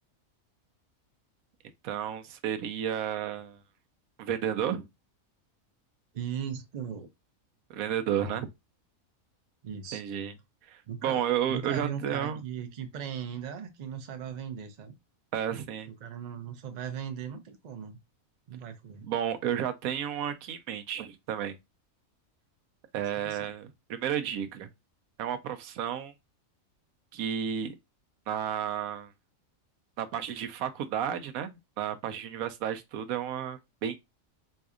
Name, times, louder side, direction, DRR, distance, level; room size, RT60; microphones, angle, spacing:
voice 1, 1.8-3.6 4.2-4.8 7.7-8.5 9.9-10.3 10.7-12.4 15.3-15.9 19.0-21.5 22.9-24.7 25.2-26.1 27.1-27.7 28.3-29.1 30.0-34.0, right 9 dB, 80° right, 1.0 m, -32 dB
voice 2, 6.1-7.1 8.2-8.4 9.6-10.0 10.9-15.0 16.0-18.0 18.5-19.1 23.0-23.5, right 8 dB, 50° right, 0.5 m, -38 dB
4.1 x 2.7 x 2.3 m
omnidirectional pair, 1.5 m